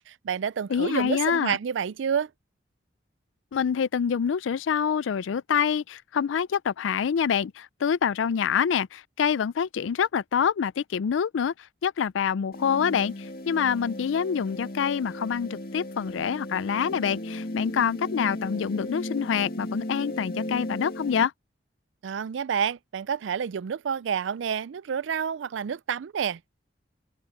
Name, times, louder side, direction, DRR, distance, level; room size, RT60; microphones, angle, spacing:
voice 1, 0.0-2.3 22.0-26.5, right 7 dB, 80° right, 0.4 m, -29 dB
voice 2, 0.7-1.6 3.5-11.5 11.8-21.3, left 7 dB, 85° left, 0.4 m, -26 dB
sound 1, 12.5-21.3, left 1 dB, 50° left, 2.1 m, -36 dB
open air
head